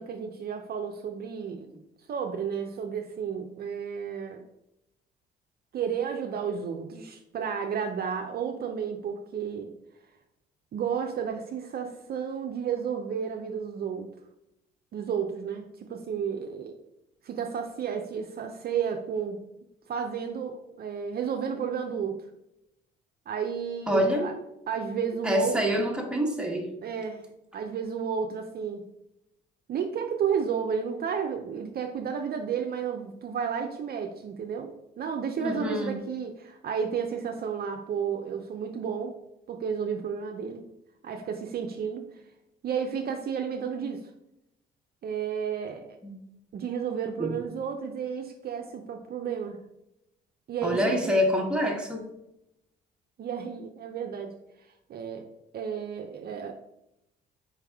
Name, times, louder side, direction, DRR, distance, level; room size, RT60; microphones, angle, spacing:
voice 1, 0.0-1.7 2.1-4.4 5.7-9.7 10.7-14.1 14.9-16.8 17.2-19.4 19.9-22.2 23.3-24.3 24.7-25.6 26.8-27.3 27.5-28.8 29.7-34.7 35.0-39.2 39.5-40.7 41.0-42.2 42.6-44.1 45.0-45.9 46.5-49.6 50.5-51.1 53.2-55.3 55.5-56.5, right 7 dB, 50° right, 4 dB, 0.5 m, -32 dB
voice 2, 23.9-24.3 25.2-26.7 35.4-36.0 46.0-46.1 47.2-47.3 50.6-52.1, equal, 5° right, 0 dB, 1.2 m, -26 dB
4.6 x 3.4 x 3.4 m, 0.84 s
supercardioid pair, 75°, 20 cm